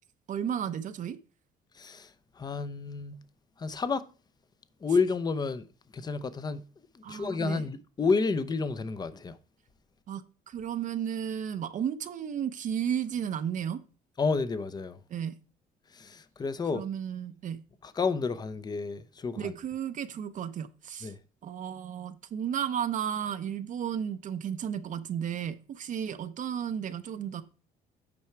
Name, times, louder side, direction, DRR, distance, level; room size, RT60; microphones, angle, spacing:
voice 1, 0.3-1.2 7.0-7.6 10.1-13.8 15.1-15.4 16.7-17.6 19.4-21.1 21.4-27.4, right 8 dB, 50° right, 0.6 m, -33 dB
voice 2, 1.7-3.2 3.6-4.0 4.8-5.7 5.9-6.7 6.9-9.4 14.2-15.0 15.9-16.8 17.8-19.5 21.0-21.2, left 4 dB, 25° left, 0.6 m, -30 dB
8.7 x 4.6 x 4.5 m
cardioid pair, 110°, 17 cm